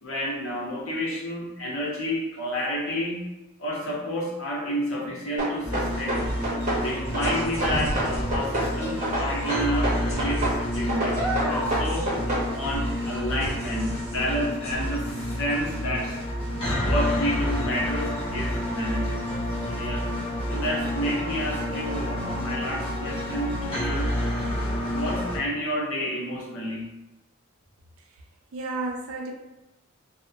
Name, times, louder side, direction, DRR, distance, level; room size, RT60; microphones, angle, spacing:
voice 1, 0.0-3.3 3.6-6.4 6.7-12.1 12.5-16.2 16.8-20.1 20.5-24.1 24.9-26.9, equal, 70° left, -4 dB, 0.7 m, -30 dB
sound 1, 5.4-6.8 7.1-8.7 9.0-10.6 10.9-12.5, right 1 dB, 35° right, 0.7 m, -27 dB
sound 2, 5.5-15.7, equal, 10° left, 1.3 m, -35 dB
sound 3, 5.6-25.4, equal, 25° left, 0.7 m, -29 dB
voice 2, 28.5-29.3, right 3 dB, 80° right, 1 dB, 0.4 m, -32 dB
2.8 x 2.1 x 2.4 m, 0.98 s
head